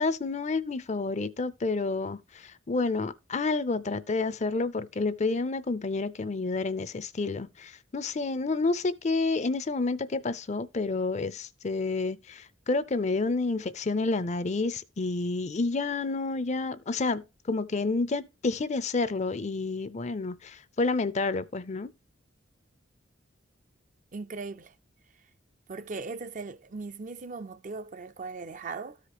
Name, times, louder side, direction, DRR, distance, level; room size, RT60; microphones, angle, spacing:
voice 1, 0.0-21.9, left 3 dB, 35° left, 0.5 m, -29 dB
voice 2, 24.1-24.7 25.7-29.0, right 4 dB, 40° right, 0.5 m, -38 dB
13.5 x 4.9 x 2.9 m
head